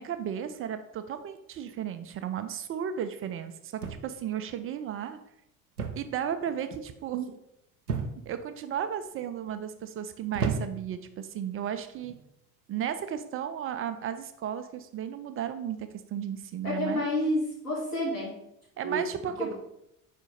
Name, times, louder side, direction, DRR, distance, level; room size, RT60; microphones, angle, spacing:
voice 1, 0.0-5.2 6.0-7.3 8.3-12.1 12.7-17.1 18.8-19.5, right 9 dB, 30° right, 9 dB, 0.5 m, -34 dB
sound 1, 3.8-4.3 5.8-6.2 6.5-6.9 7.9-8.4 9.1-9.5 10.3-11.0 11.9-12.2, right 5 dB, 85° right, 0.6 m, -33 dB
voice 2, 16.6-18.3 18.8-19.0 19.4-19.5, left 1 dB, 90° left, -8 dB, 2.3 m, -29 dB
5.0 x 4.5 x 4.9 m, 0.82 s
figure-of-eight pair, 55°, 44 cm